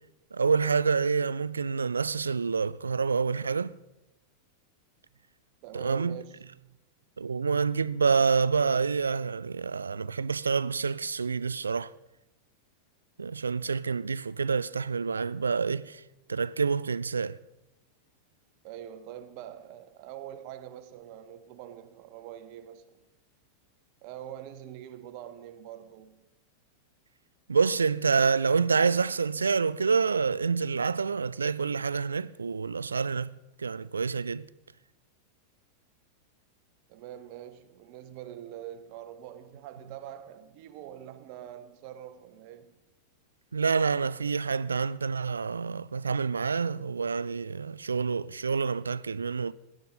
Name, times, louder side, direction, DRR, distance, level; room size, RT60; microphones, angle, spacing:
voice 1, 0.3-3.7 5.7-6.2 7.2-11.9 13.2-16.0 16.3-17.4 27.5-33.3 33.6-34.5 43.5-49.5, right 5 dB, 75° right, 0.3 m, -27 dB
voice 2, 5.6-6.8 18.6-22.9 24.0-26.3 36.9-42.8, right 11 dB, 45° right, 0.9 m, -44 dB
17.0 x 11.5 x 3.8 m
figure-of-eight pair, 90°, 0 cm